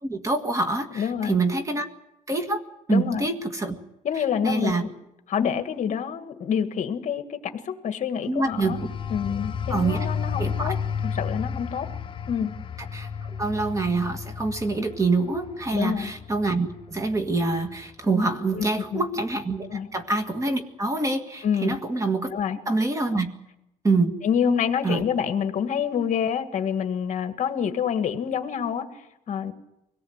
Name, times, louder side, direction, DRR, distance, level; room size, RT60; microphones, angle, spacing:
voice 1, 0.0-1.9 2.3-2.6 2.9-3.8 4.4-4.8 8.3-8.9 9.7-10.1 10.4-10.7 12.9-22.3 22.7-23.3 23.8-24.1 24.8-25.1, right 3 dB, 20° right, 7 dB, 1.9 m, -26 dB
voice 2, 0.9-1.3 2.9-3.3 4.0-4.9 5.3-8.8 9.1-10.8 11.0-11.9 12.3-12.5 15.7-16.1 18.5-19.0 19.6-19.9 21.4-21.8 22.3-22.6 23.1-23.2 24.2-29.5, left 7 dB, 55° left, 8 dB, 1.6 m, -27 dB
sound 1, 8.5-18.9 19.3-19.6, left 6 dB, 35° left, 1.0 m, -33 dB
24.0 x 18.0 x 8.1 m, 0.89 s
cardioid pair, 135°, 15 cm